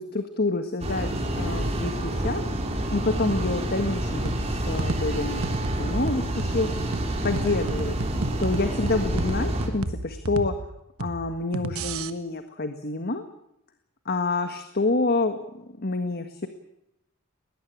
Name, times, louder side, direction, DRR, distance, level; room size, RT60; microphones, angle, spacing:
voice 1, 0.0-2.4 2.9-5.5 5.8-6.7 7.2-7.9 8.4-10.5 11.0-13.2 14.0-16.5, left 3 dB, 45° left, 8 dB, 1.6 m, -27 dB
sound 1, 0.8-9.7, right 1 dB, 30° right, 4.0 m, -28 dB
sound 2, 4.3-12.1, right 2 dB, 80° right, 1.4 m, -33 dB
21.0 x 19.5 x 8.8 m, 0.82 s
head